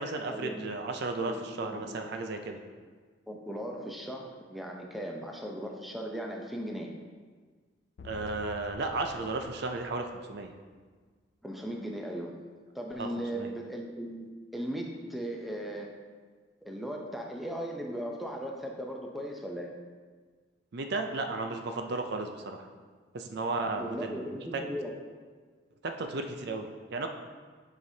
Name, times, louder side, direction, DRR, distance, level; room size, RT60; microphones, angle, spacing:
voice 1, 0.0-2.6 8.0-10.5 13.0-13.1 13.3-13.5 20.7-22.7 23.1-24.2 24.5-24.7 25.8-27.1, right 3 dB, 60° right, 5 dB, 0.5 m, -34 dB
voice 2, 1.2-2.0 3.3-6.9 11.4-12.4 12.7-16.0 16.6-19.7 23.8-24.9, equal, ahead, 0 dB, 0.5 m, -37 dB
sound 1, 8.0-10.7, left 4 dB, 60° left, 0.3 m, -49 dB
7.7 x 4.9 x 2.8 m, 1.5 s
head